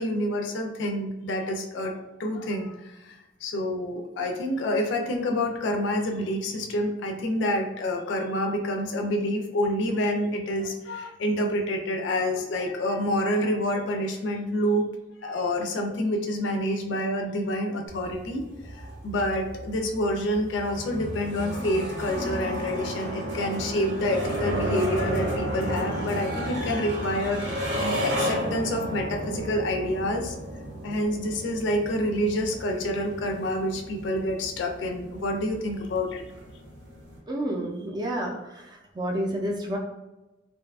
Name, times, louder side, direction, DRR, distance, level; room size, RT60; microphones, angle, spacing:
voice 1, 0.0-1.9 2.2-14.9 15.2-18.4 19.0-27.4 27.7-30.3 30.8-36.2, left 1 dB, 75° left, 3 dB, 0.4 m, -28 dB
sound 1, 17.9-37.2, equal, 65° right, 0.7 m, -33 dB
voice 2, 37.3-39.8, right 1 dB, 25° right, 0 dB, 0.4 m, -30 dB
2.6 x 2.3 x 2.2 m, 1.0 s
head